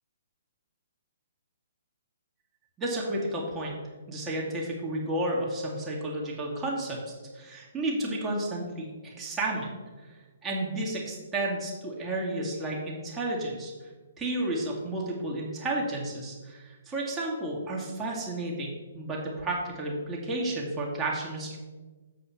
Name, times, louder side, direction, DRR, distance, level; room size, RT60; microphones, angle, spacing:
voice 1, 2.8-3.8 4.1-9.7 10.0-13.7 14.2-21.6, right 1 dB, 15° right, -4 dB, 2.0 m, -32 dB
7.6 x 4.8 x 5.6 m, 1.3 s
figure-of-eight pair, 130°, 0 cm